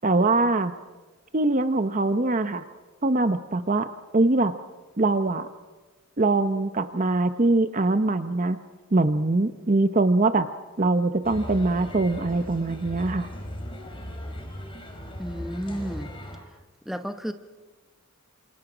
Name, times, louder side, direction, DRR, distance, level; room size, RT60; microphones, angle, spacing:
voice 1, 0.0-0.7 1.3-2.6 3.0-4.5 5.0-5.5 6.2-8.6 8.9-10.5 10.8-13.3, right 2 dB, 35° right, 10 dB, 0.8 m, -22 dB
sound 1, 11.2-16.4, equal, 25° left, 4.8 m, -37 dB
voice 2, 15.2-16.1 16.8-17.3, equal, ahead, 7 dB, 1.0 m, -32 dB
28.5 x 27.0 x 5.1 m, 1.2 s
head